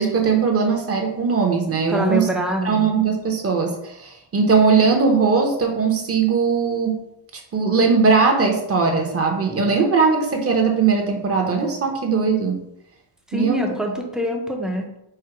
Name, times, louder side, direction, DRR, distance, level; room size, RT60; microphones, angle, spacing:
voice 1, 0.0-2.3 2.6-7.0 7.3-12.6 13.3-13.7, right 5 dB, 30° right, 3 dB, 0.7 m, -19 dB
voice 2, 1.9-2.9 13.3-14.9, right 1 dB, ahead, 1 dB, 0.4 m, -24 dB
4.5 x 2.1 x 4.6 m, 0.81 s
cardioid pair, 135°, 49 cm